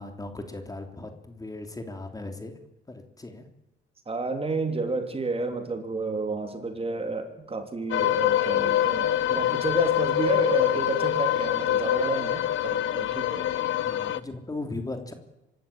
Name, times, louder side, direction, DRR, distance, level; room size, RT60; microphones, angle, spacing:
voice 1, 0.0-2.5 2.9-3.4 13.8-15.1, left 2 dB, 20° left, 6 dB, 3.1 m, -37 dB
voice 2, 4.1-13.5, right 3 dB, 30° right, 6 dB, 3.1 m, -31 dB
sound 1, 7.9-14.2, left 12 dB, 75° left, 0.9 m, -25 dB
25.0 x 13.0 x 9.0 m, 0.94 s
cardioid pair, 90°, 20 cm